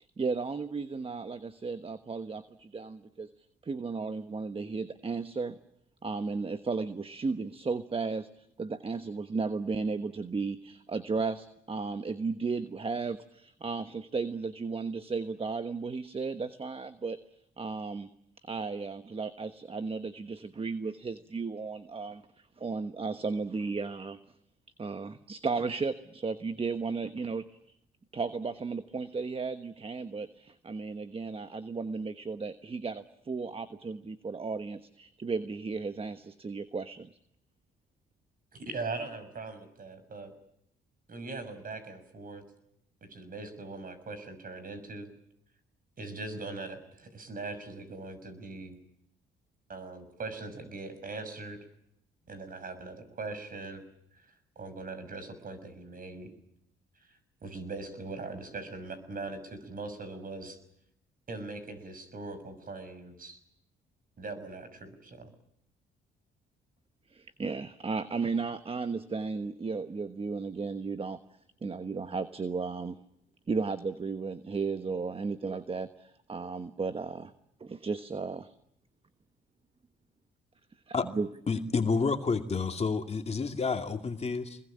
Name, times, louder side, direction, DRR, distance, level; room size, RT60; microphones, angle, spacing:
voice 1, 0.2-3.3 3.7-5.5 6.0-8.3 8.6-17.2 17.6-18.1 18.5-22.2 22.6-24.2 24.8-27.4 28.1-37.1 67.1-71.2 71.6-73.0 73.5-75.9 76.3-77.3 77.6-78.5 81.1-81.3, right 4 dB, 30° right, 1.2 m, -34 dB
voice 2, 38.5-40.3 41.1-42.4 43.1-45.1 46.0-48.8 49.7-51.6 52.3-53.8 54.3-56.3 57.1-60.6 61.3-63.4 64.2-65.3, right 3 dB, 45° right, 6.2 m, -41 dB
voice 3, 81.5-84.6, left 4 dB, 30° left, 2.5 m, -29 dB
25.0 x 21.5 x 8.8 m
cardioid pair, 90°, 20 cm